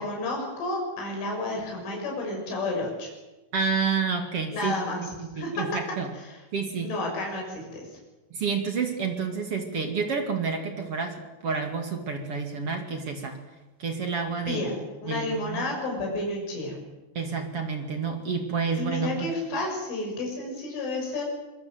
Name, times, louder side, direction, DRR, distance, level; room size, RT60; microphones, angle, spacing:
voice 1, 0.0-3.1 4.5-5.0 5.4-5.6 6.8-8.0 14.5-14.8 15.0-16.8 18.8-21.2, left 2 dB, 75° left, 0 dB, 9.0 m, -31 dB
voice 2, 3.5-6.1 6.5-7.0 8.3-13.4 13.8-14.6 15.0-15.7 17.1-19.3, right 5 dB, 40° right, 4 dB, 2.3 m, -29 dB
25.5 x 22.5 x 7.9 m, 1.1 s
omnidirectional pair, 5.6 m